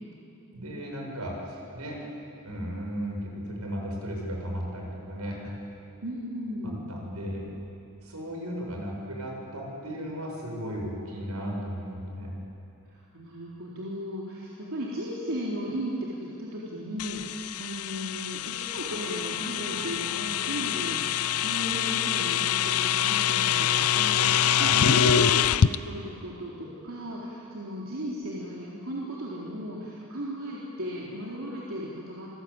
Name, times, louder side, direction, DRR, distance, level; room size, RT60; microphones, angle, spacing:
voice 1, 0.5-2.0 2.4-5.6 6.6-7.5 8.0-12.3 24.5-24.8, equal, 85° right, -1 dB, 7.7 m, -35 dB
voice 2, 6.0-6.9 12.9-32.3, equal, 65° right, -5 dB, 3.9 m, -36 dB
sound 1, 17.0-25.8, left 9 dB, 80° left, 0.6 m, -25 dB
sound 2, 18.8-23.9, right 1 dB, 35° right, 3.3 m, -48 dB
28.0 x 21.0 x 9.0 m, 2.9 s
head